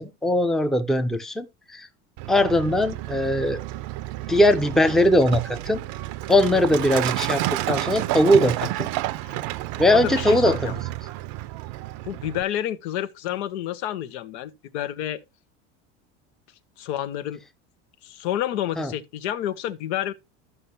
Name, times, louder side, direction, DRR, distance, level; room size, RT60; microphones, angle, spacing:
voice 1, 0.0-1.5 1.7-1.9 2.3-3.6 4.3-5.8 6.3-8.9 9.8-10.6 18.8-18.9, left 1 dB, ahead, 0.6 m, -20 dB
Truck, 2.2-12.4, right 16 dB, 60° right, 0.6 m, -30 dB
voice 2, 6.5-6.9 9.2-9.4 9.9-10.8 12.0-15.2 16.8-17.4 18.0-20.1, left 11 dB, 75° left, 1.0 m, -29 dB
13.5 x 5.6 x 2.8 m
supercardioid pair, 120°, 33 cm